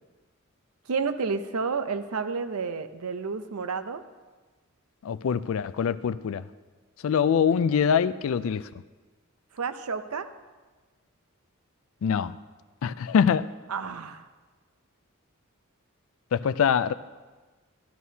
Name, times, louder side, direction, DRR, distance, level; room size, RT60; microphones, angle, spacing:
voice 1, 0.9-4.0 9.5-10.3 13.7-14.3, right 5 dB, 85° right, 11 dB, 0.6 m, -30 dB
voice 2, 5.0-6.4 7.0-8.7 12.0-12.4 12.8-13.5 16.3-16.9, left 7 dB, 65° left, 15 dB, 0.3 m, -24 dB
14.0 x 11.0 x 2.7 m, 1.3 s
head